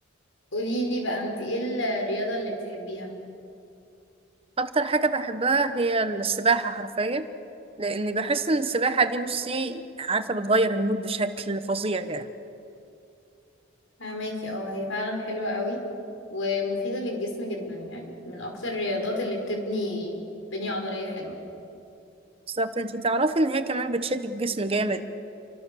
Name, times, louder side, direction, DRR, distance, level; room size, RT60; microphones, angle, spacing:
voice 1, 0.5-3.1 14.0-15.8 16.3-20.2 20.5-21.4, left 1 dB, 75° left, 2 dB, 5.4 m, -30 dB
voice 2, 4.6-7.2 7.8-12.3 22.5-25.0, right 3 dB, 30° right, 9 dB, 1.0 m, -25 dB
28.5 x 25.0 x 7.1 m, 2.6 s
head